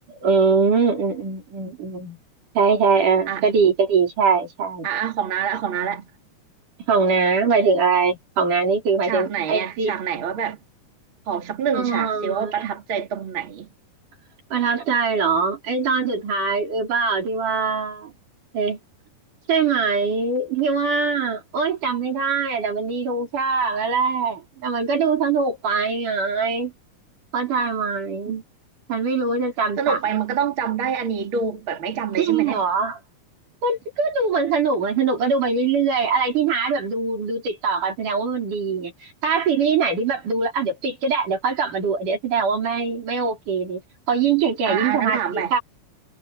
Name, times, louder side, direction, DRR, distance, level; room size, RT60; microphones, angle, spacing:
voice 1, 0.1-2.2 2.5-4.9 6.9-9.9 11.7-12.7 14.5-18.1 18.5-18.8 19.5-26.7 27.3-28.4 28.9-30.0 32.2-33.0 33.6-43.8 44.1-45.6, right 5 dB, 70° right, 6.2 m, -22 dB
voice 2, 4.8-6.1 9.0-10.6 11.3-13.7 29.8-32.6 44.7-45.5, right 7 dB, 40° right, 3.1 m, -26 dB
omnidirectional pair, 3.7 m